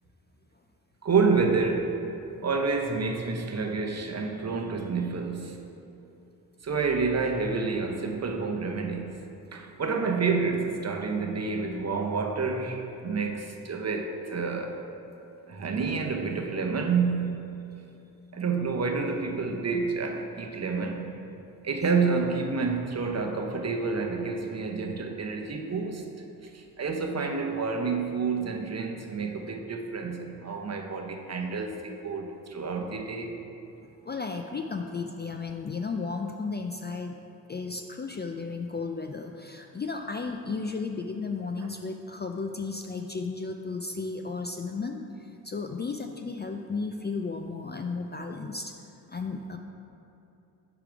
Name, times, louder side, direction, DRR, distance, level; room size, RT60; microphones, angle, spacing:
voice 1, 1.0-2.0 2.4-5.6 6.6-9.2 9.5-14.8 15.5-17.4 18.3-21.2 21.6-26.1 26.4-33.4, right 4 dB, 40° right, 3 dB, 0.8 m, -29 dB
voice 2, 33.8-37.2 37.5-45.0 45.4-48.7 49.1-49.6, left 4 dB, 25° left, 4 dB, 0.4 m, -34 dB
6.5 x 5.0 x 5.0 m, 2.9 s
cardioid pair, 75°, 39 cm